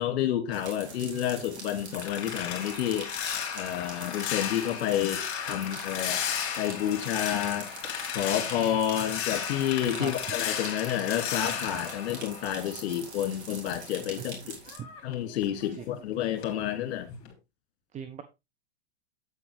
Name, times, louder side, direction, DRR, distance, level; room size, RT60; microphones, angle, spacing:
voice 1, 0.0-3.1 3.5-6.2 6.6-7.7 8.1-14.6 15.0-17.1, left 11 dB, 55° left, 2.4 m, -30 dB
sound 1, 0.5-14.8, right 4 dB, 75° right, 4.1 m, -44 dB
sound 2, 1.4-13.0 13.4-16.0 16.4-16.7 17.1-17.3, left 8 dB, 40° left, 3.7 m, -35 dB
voice 2, 17.9-18.2, right 8 dB, 20° right, 0.9 m, -38 dB
8.7 x 8.4 x 3.4 m
hypercardioid pair, 105°, 34 cm